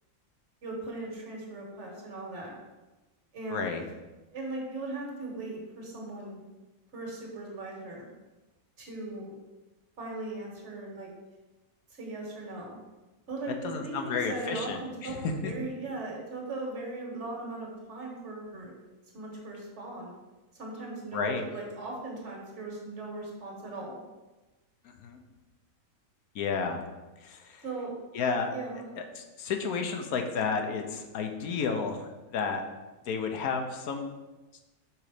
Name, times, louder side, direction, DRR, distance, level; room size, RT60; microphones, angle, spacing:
voice 1, 0.6-2.6 3.3-3.7 4.3-6.4 6.9-8.1 8.8-9.3 10.0-11.1 11.9-12.8 13.3-18.7 19.1-20.2 20.6-24.0 27.6-27.9 28.5-28.9, right 2 dB, 50° right, -1 dB, 1.7 m, -38 dB
voice 2, 3.5-3.8 13.6-15.5 21.1-21.4 24.8-25.2 26.3-26.8 27.2-27.6 28.1-28.5 29.0-32.6 33.1-34.1, left 5 dB, 85° left, 4 dB, 1.2 m, -32 dB
6.2 x 3.9 x 4.9 m, 1.1 s
omnidirectional pair, 1.5 m